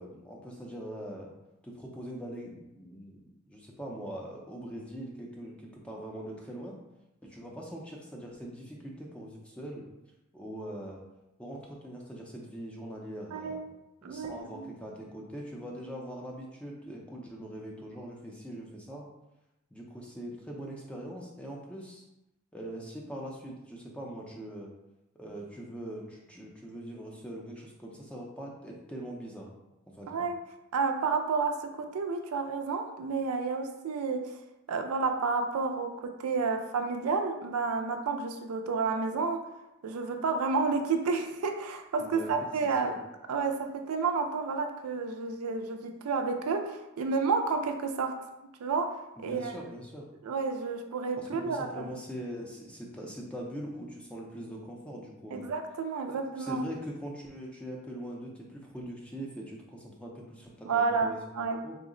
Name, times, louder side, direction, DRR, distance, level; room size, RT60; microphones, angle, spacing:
voice 1, 0.0-1.3 1.6-6.8 7.2-9.8 10.3-11.0 11.4-13.6 14.0-19.0 19.7-22.0 22.5-24.7 25.1-29.5 29.9-30.3 42.0-42.3 42.7-43.0 49.2-50.1 51.2-55.5 56.1-61.8, equal, 5° left, -2 dB, 0.4 m, -42 dB
voice 2, 14.0-14.6 30.1-30.4 30.7-34.3 34.7-39.5 39.8-43.0 43.3-48.2 48.6-49.5 50.2-51.9 55.3-56.6 60.7-61.6, right 4 dB, 90° right, 5 dB, 0.4 m, -30 dB
3.7 x 2.1 x 3.7 m, 0.94 s
head